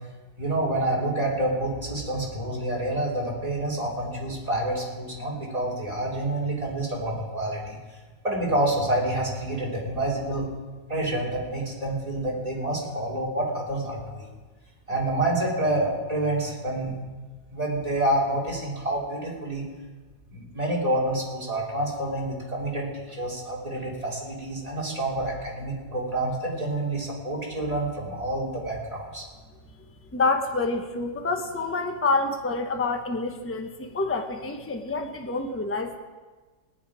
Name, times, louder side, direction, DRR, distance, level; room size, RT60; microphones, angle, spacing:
voice 1, 0.4-7.8 8.2-10.5 10.9-14.2 14.9-16.9 17.5-19.6 20.3-29.3, right 1 dB, 20° right, -2 dB, 3.3 m, -28 dB
voice 2, 30.1-36.0, left 3 dB, 10° left, 5 dB, 0.8 m, -27 dB
18.5 x 10.5 x 5.0 m, 1.3 s
omnidirectional pair, 1.9 m